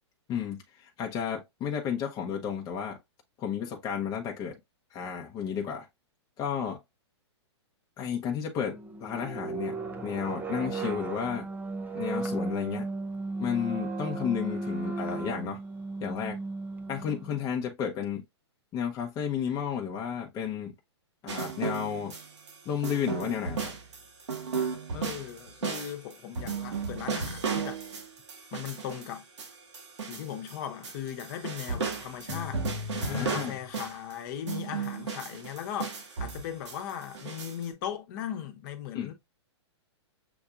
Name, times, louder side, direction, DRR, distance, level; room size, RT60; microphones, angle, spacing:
voice 1, 0.3-3.0 3.4-4.6 4.9-5.9 6.4-6.8 8.0-9.8 10.0-11.5 11.9-12.9 13.4-15.6 16.0-16.4 16.9-18.2 18.7-20.7 21.2-22.2 22.6-23.7 32.9-33.5 38.9-39.1, left 8 dB, 25° left, 0.9 m, -32 dB
sound 1, 8.7-17.5, right 3 dB, 10° right, 0.7 m, -35 dB
sound 2, 21.3-22.5 22.8-30.6 30.8-34.1 34.5-37.6, right 5 dB, 80° right, 1.8 m, -34 dB
voice 2, 24.9-27.8 28.5-29.3 30.0-39.1, left 10 dB, 45° left, 1.1 m, -38 dB
7.0 x 2.7 x 2.4 m
hypercardioid pair, 130°, 15 cm